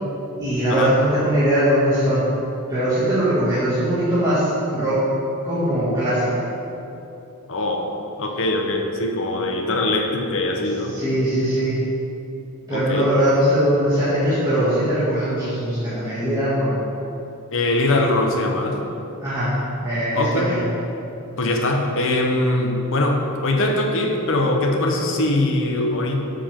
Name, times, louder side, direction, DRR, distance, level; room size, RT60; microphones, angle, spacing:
voice 1, 0.4-2.2 2.7-5.0 5.4-6.4 10.9-11.8 12.7-16.8 19.2-19.5 19.8-20.6, right 1 dB, 20° right, -13 dB, 2.4 m, -20 dB
voice 2, 7.5-7.9 8.2-11.0 12.7-13.1 16.2-16.3 17.5-18.8 20.1-20.5 21.4-26.2, left 2 dB, 65° left, 2 dB, 1.2 m, -22 dB
12.5 x 6.9 x 3.8 m, 2.9 s
head